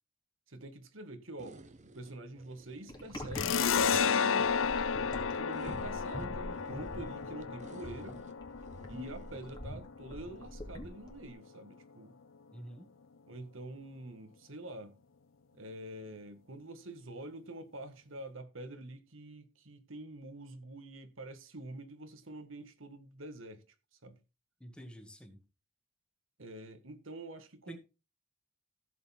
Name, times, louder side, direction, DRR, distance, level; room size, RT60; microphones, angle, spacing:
voice 1, 0.5-4.5 5.3-8.2 8.9-12.1 13.3-15.0 15.5-23.6 24.0-24.2 26.4-27.8, right 1 dB, 80° right, 1.8 m, -46 dB
sound 1, 1.4-9.6, right 2 dB, 40° right, 1.1 m, -56 dB
sound 2, 2.9-11.3, left 1 dB, 20° left, 2.5 m, -45 dB
sound 3, 3.3-10.5, left 6 dB, 80° left, 0.6 m, -32 dB
voice 2, 12.5-12.9 24.6-25.4 27.7-27.8, equal, 5° left, 2.1 m, -48 dB
15.5 x 6.8 x 3.6 m
head